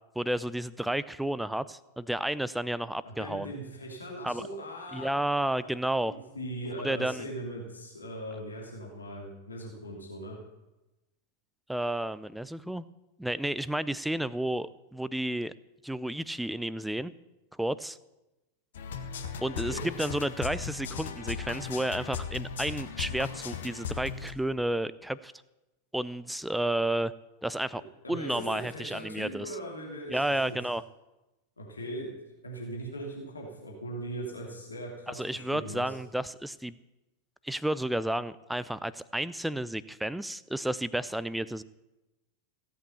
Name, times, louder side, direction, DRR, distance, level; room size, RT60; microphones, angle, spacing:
voice 1, 0.2-3.5 4.2-4.5 4.9-6.1 6.8-7.2 11.7-12.8 13.2-15.5 15.8-17.1 17.5-18.0 19.4-25.3 25.9-27.1 27.4-27.8 28.1-29.6 30.1-30.8 35.1-36.8 37.4-41.6, right 1 dB, 5° right, 17 dB, 0.5 m, -31 dB
voice 2, 3.0-5.1 5.6-5.7 6.0-10.4 19.4-19.8 28.0-30.6 31.6-32.1 32.4-35.9, right 1 dB, 75° left, -2 dB, 2.9 m, -40 dB
sound 1, 18.7-24.3, left 7 dB, 60° left, 1.5 m, -37 dB
16.5 x 8.4 x 7.3 m, 1.0 s
figure-of-eight pair, 90°, 0 cm